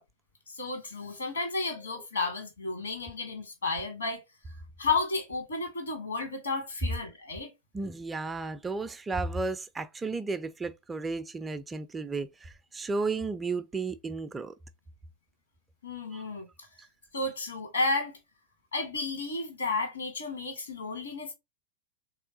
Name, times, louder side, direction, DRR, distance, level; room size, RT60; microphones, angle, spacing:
voice 1, 0.5-4.2 4.8-7.5 15.8-16.7 17.1-18.2 18.7-21.3, left 3 dB, 75° left, 1.4 m, -32 dB
voice 2, 7.7-14.5 16.1-16.2, right 3 dB, 15° right, 0.3 m, -33 dB
3.4 x 2.9 x 2.7 m
figure-of-eight pair, 90°, 0 cm